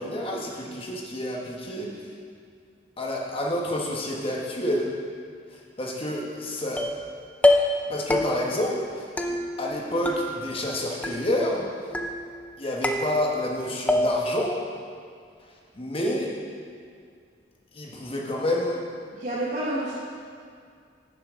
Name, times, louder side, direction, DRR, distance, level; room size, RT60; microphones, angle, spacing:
voice 1, 0.0-1.9 3.0-4.9 5.5-6.9 7.9-12.0 12.6-14.6 15.7-16.3 17.7-18.8, left 1 dB, 30° left, -2 dB, 1.2 m, -29 dB
sound 1, 6.8-7.1 7.4-7.8 8.1-8.6 9.2-9.8 10.1-10.7 11.0-11.6 11.9-12.5 12.8-13.5 13.9-14.4, left 1 dB, 10° left, 0.4 m, -25 dB
voice 2, 19.1-20.0, right 1 dB, 45° right, -8 dB, 1.3 m, -29 dB
11.0 x 6.9 x 3.7 m, 2.2 s
head